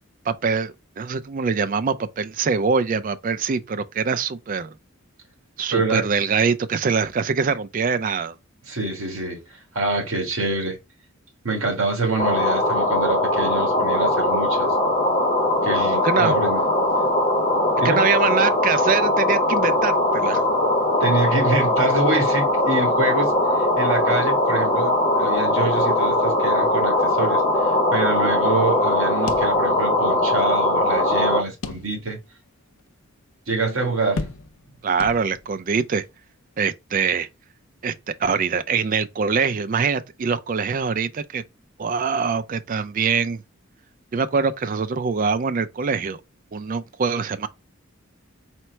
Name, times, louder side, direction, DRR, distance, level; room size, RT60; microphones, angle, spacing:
voice 1, 0.3-4.7 5.6-8.3 16.0-16.4 17.8-20.4 34.8-36.0 36.6-37.3 37.8-37.9 38.2-41.4 41.8-43.4 44.1-46.2 46.5-47.5, right 5 dB, 40° right, 0.4 m, -23 dB
voice 2, 5.7-6.0 8.7-9.4 9.7-10.8 11.4-14.7 15.6-16.6 17.8-18.0 21.0-23.3 23.8-32.2 33.5-34.3, right 2 dB, 80° right, 1.7 m, -25 dB
sound 1, 12.2-31.4, left 1 dB, 30° left, 0.7 m, -20 dB
sound 2, 29.3-30.1 30.4-30.5 31.6-32.3 32.8-32.9 34.2-34.7 35.0-35.6, left 3 dB, 85° left, 0.5 m, -34 dB
4.3 x 2.0 x 4.3 m
head